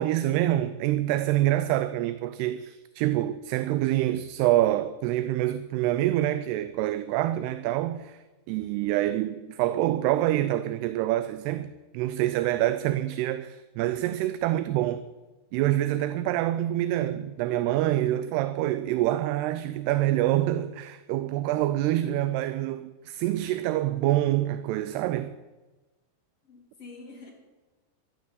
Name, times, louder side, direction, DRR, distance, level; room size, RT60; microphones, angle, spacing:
voice 1, 0.0-8.2 8.5-15.0 15.5-25.3, right 14 dB, 80° right, 2.6 m, -26 dB
voice 2, 26.4-27.3, left 3 dB, 40° left, 3.0 m, -47 dB
12.0 x 12.0 x 8.4 m
omnidirectional pair, 4.8 m